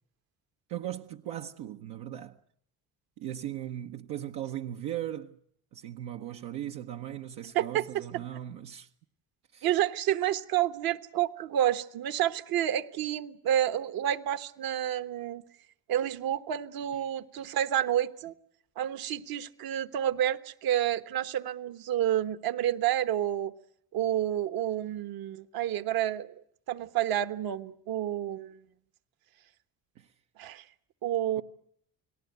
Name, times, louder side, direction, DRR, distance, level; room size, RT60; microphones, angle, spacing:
voice 1, 0.7-2.4 3.2-5.4 5.7-8.9 9.5-9.7 30.0-30.1, right 12 dB, 80° right, 1.0 m, -38 dB
voice 2, 7.5-8.0 9.6-15.4 15.9-18.3 18.8-23.5 23.9-26.3 26.7-28.6 30.4-30.6 31.0-31.4, right 11 dB, 65° right, 1.3 m, -29 dB
29.5 x 19.0 x 8.0 m
supercardioid pair, 75°, 38 cm